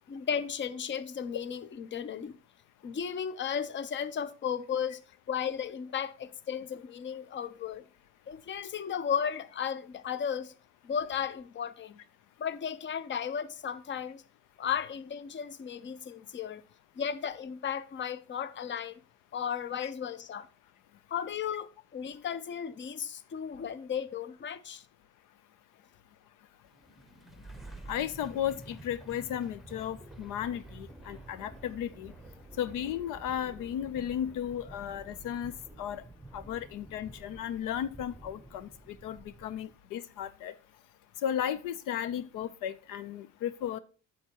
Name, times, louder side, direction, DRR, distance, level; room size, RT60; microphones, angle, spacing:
voice 1, 0.1-2.3 2.8-5.0 5.3-7.9 8.3-10.5 10.8-12.0 12.4-14.2 14.6-16.6 17.0-19.0 19.3-20.5 21.1-24.8, left 8 dB, 35° left, 0.6 m, -35 dB
sound 1, 26.7-39.8, right 2 dB, ahead, 0.8 m, -50 dB
voice 2, 27.9-32.1 32.6-35.5 35.8-36.0 36.3-40.5 41.2-43.8, left 10 dB, 80° left, 0.5 m, -35 dB
8.7 x 7.2 x 2.9 m
supercardioid pair, 70°, 32 cm